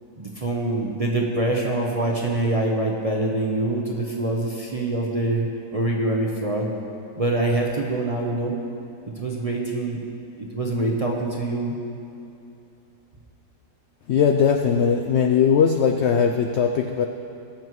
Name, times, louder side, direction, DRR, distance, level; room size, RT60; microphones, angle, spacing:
voice 1, 0.2-6.7 7.2-8.6 9.1-10.0 10.4-11.8, right 2 dB, 35° right, -1 dB, 0.6 m, -25 dB
voice 2, 14.1-17.1, left 7 dB, 75° left, 5 dB, 0.6 m, -19 dB
21.0 x 7.2 x 3.1 m, 2.7 s
omnidirectional pair, 1.7 m